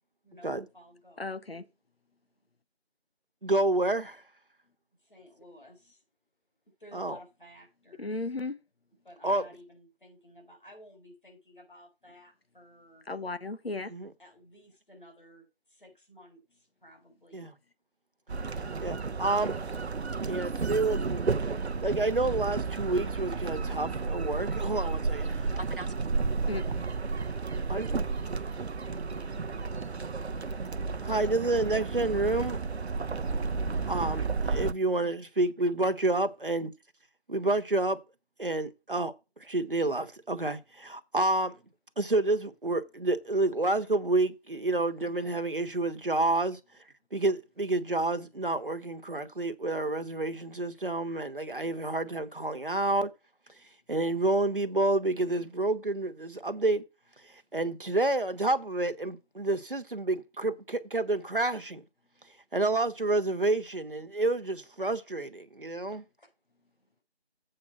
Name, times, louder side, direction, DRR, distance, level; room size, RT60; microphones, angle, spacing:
voice 1, 0.2-1.4 5.0-6.0 6.8-8.1 9.0-13.0 14.2-17.5 26.4-26.8 44.7-44.9 65.9-66.3, left 1 dB, 50° left, 4.5 m, -54 dB
voice 2, 1.2-1.7 8.0-8.6 13.0-13.9 26.5-26.6, left 3 dB, 65° left, 1.1 m, -35 dB
voice 3, 3.4-4.2 6.9-7.2 9.2-9.4 13.9-14.1 17.3-17.5 18.8-19.5 20.3-21.4 21.8-25.9 27.7-27.9 31.0-32.6 33.9-36.7 37.3-38.0 38.4-39.1 39.4-41.5 42.0-46.6 47.1-53.1 53.9-56.8 57.5-61.8 62.5-66.0, right 2 dB, 55° right, 1.1 m, -29 dB
sound 1, 18.3-34.7, right 4 dB, 80° right, 0.7 m, -32 dB
7.9 x 4.7 x 7.0 m
figure-of-eight pair, 180°, 32 cm